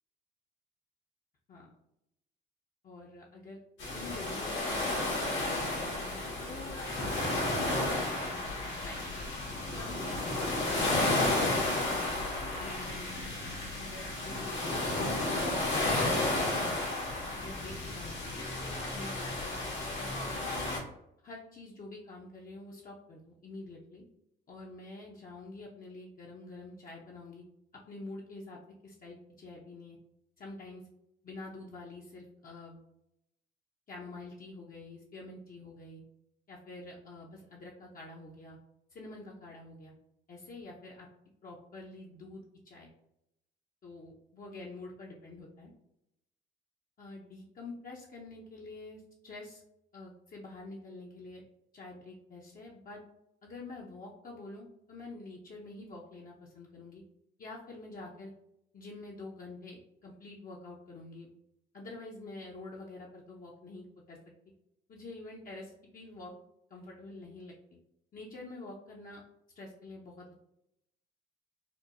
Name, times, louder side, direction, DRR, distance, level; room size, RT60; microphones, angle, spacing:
voice 1, 2.8-3.6 3.9-8.4 8.8-9.3 9.7-10.3 10.5-11.7 12.6-15.7 17.3-19.5 20.0-20.8 21.2-24.0 24.5-27.4 27.9-30.0 30.4-30.8 31.2-32.8 33.9-36.0 36.5-38.6 38.9-39.9 40.3-41.1 41.4-42.9 43.8-45.7 47.0-49.6 49.9-51.4 51.7-53.0 53.4-57.0 57.4-58.3 58.7-61.3 61.7-64.2 64.9-66.3 66.7-67.5 68.1-69.2 69.6-70.4, left 2 dB, 45° left, -3 dB, 0.7 m, -47 dB
sound 1, 3.8-20.8, left 2 dB, 75° left, 1.2 m, -32 dB
4.4 x 2.2 x 2.6 m, 0.81 s
cardioid pair, 90°, 20 cm